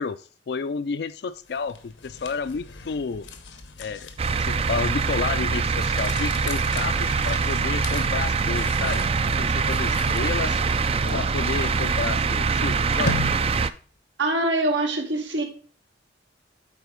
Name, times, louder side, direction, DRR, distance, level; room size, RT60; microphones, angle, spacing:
voice 1, 0.0-3.3 3.8-10.6 11.1-13.2, left 5 dB, 60° left, 13 dB, 0.4 m, -31 dB
sound 1, 1.5-13.8, left 3 dB, 90° left, 1.1 m, -38 dB
sound 2, 4.2-13.7, right 5 dB, 30° right, 0.3 m, -24 dB
voice 2, 14.2-15.4, right 2 dB, 85° right, 3 dB, 1.8 m, -24 dB
8.1 x 4.5 x 5.0 m, 0.41 s
head